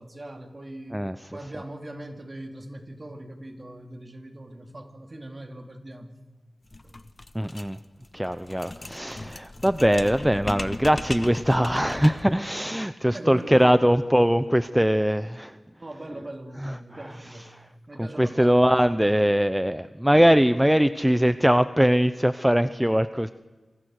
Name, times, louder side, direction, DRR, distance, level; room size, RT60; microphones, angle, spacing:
voice 1, 0.0-1.0 1.3-6.2 6.8-7.0 9.6-9.7 13.1-14.0 15.8-17.5 17.9-18.8, right 1 dB, 35° right, 4 dB, 3.2 m, -41 dB
sound 1, 6.7-12.4, left 2 dB, 35° left, 1.4 m, -37 dB
voice 2, 7.3-7.8 8.1-15.6 16.6-16.7 18.0-23.3, equal, 5° right, 12 dB, 0.7 m, -21 dB
28.5 x 26.0 x 6.6 m, 1.2 s
wide cardioid pair, 65°, 0 cm